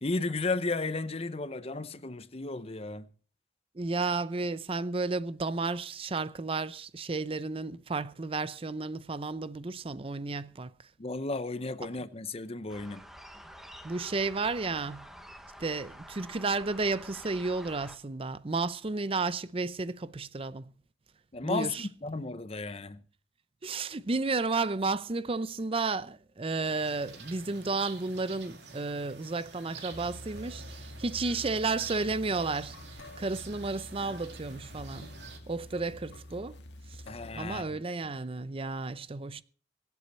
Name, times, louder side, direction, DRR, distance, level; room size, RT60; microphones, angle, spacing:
voice 1, 0.0-3.1 11.0-13.1 21.3-23.0 37.1-37.8, left 3 dB, 35° left, 0.8 m, -34 dB
voice 2, 3.8-10.7 13.8-15.1 15.6-20.7 21.4-21.9 23.6-32.8 33.2-35.1 35.5-36.6 37.3-39.4, right 3 dB, 35° right, 0.6 m, -32 dB
sound 1, 12.7-18.0, equal, ahead, 1.2 m, -48 dB
sound 2, 26.6-35.4, right 4 dB, 80° right, 2.6 m, -48 dB
sound 3, 29.9-37.6, left 1 dB, 80° left, 1.7 m, -47 dB
23.5 x 8.3 x 4.3 m
head